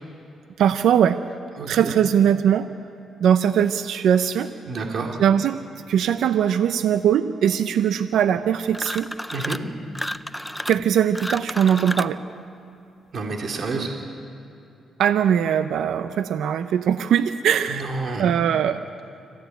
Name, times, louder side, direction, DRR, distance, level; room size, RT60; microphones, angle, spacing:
voice 1, 0.6-1.2 1.7-2.7 3.2-4.5 5.2-5.6 5.9-9.1 10.7-12.2 15.0-17.9 18.2-18.8, right 9 dB, 80° right, 10 dB, 0.7 m, -20 dB
voice 2, 1.6-1.9 4.7-5.1 9.3-9.6 13.1-13.9 17.7-18.3, right 3 dB, 50° right, 1 dB, 2.9 m, -29 dB
sound 1, 8.7-9.7 9.9-12.2, equal, ahead, 0.6 m, -32 dB
25.5 x 16.0 x 9.2 m, 2.8 s
cardioid pair, 95°, 0 cm